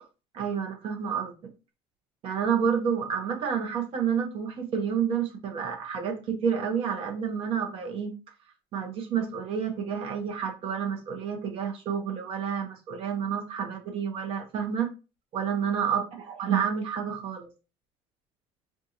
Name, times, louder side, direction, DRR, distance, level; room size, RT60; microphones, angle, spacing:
voice 1, 0.3-1.3 2.2-8.1 8.7-14.9 15.3-16.0 16.4-17.5, right 7 dB, 55° right, 4 dB, 0.7 m, -29 dB
3.5 x 2.7 x 2.8 m, 0.31 s
cardioid pair, 145°, 12 cm